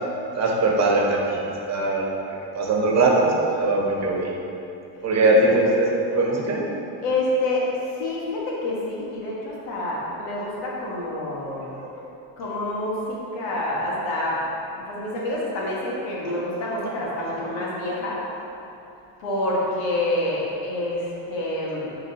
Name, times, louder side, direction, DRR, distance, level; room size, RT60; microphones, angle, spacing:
voice 1, 0.4-2.1 2.5-4.3 5.0-6.7 11.8-11.9, right 2 dB, 35° right, -2 dB, 1.2 m, -21 dB
voice 2, 7.0-11.7 12.4-14.4 14.9-18.2 19.2-21.9, left 1 dB, 85° left, -5 dB, 1.5 m, -27 dB
9.8 x 3.8 x 2.8 m, 2.8 s
cardioid pair, 110°, 47 cm